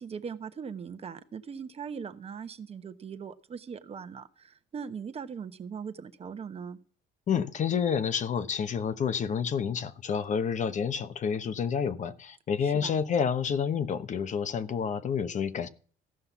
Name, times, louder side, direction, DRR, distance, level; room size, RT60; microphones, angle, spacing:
voice 1, 0.0-6.8 12.6-13.0, right 6 dB, 35° right, 1.1 m, -40 dB
voice 2, 7.3-15.7, left 7 dB, 45° left, 1.0 m, -29 dB
15.0 x 5.7 x 7.0 m
cardioid pair, 110°, 17 cm